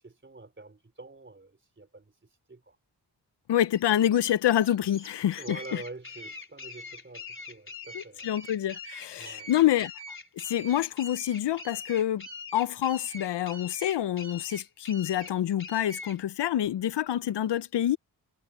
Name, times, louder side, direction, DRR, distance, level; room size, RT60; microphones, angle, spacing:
voice 1, 0.0-2.8 5.4-8.4 9.1-9.5, right 3 dB, 25° right, 4.0 m, -46 dB
voice 2, 3.5-5.6 7.9-9.9 10.4-18.0, left 11 dB, 75° left, 0.7 m, -27 dB
sound 1, 3.8-16.2, left 3 dB, 30° left, 3.9 m, -43 dB
cardioid pair, 80°, 42 cm